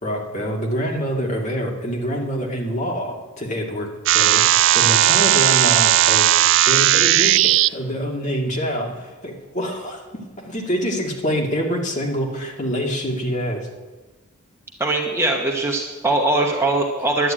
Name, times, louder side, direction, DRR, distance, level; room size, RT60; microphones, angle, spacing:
voice 1, 0.0-13.7, equal, 35° left, 0 dB, 2.2 m, -26 dB
sound 1, 4.1-7.7, right 13 dB, 55° right, 0.3 m, -16 dB
voice 2, 14.8-17.3, right 2 dB, 10° right, 0 dB, 1.1 m, -21 dB
11.5 x 9.3 x 8.8 m, 1.2 s
head